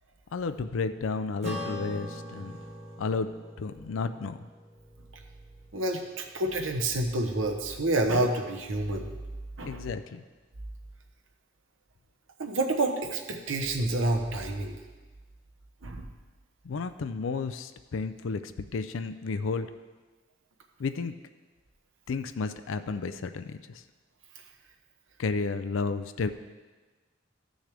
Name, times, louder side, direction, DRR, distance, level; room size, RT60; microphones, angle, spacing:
voice 1, 0.3-2.5 3.0-3.3 3.6-4.4 9.6-10.2 16.6-19.7 20.8-21.1 22.1-23.8 25.2-26.3, left 4 dB, 85° left, 10 dB, 0.4 m, -32 dB
Acoustic guitar / Strum, 1.4-6.1, left 1 dB, 35° right, 1.5 m, -42 dB
voice 2, 5.7-9.0 9.6-9.8 12.4-14.7 15.8-16.1, right 2 dB, 85° right, 2 dB, 1.0 m, -28 dB
14.5 x 6.3 x 3.4 m, 1.3 s
head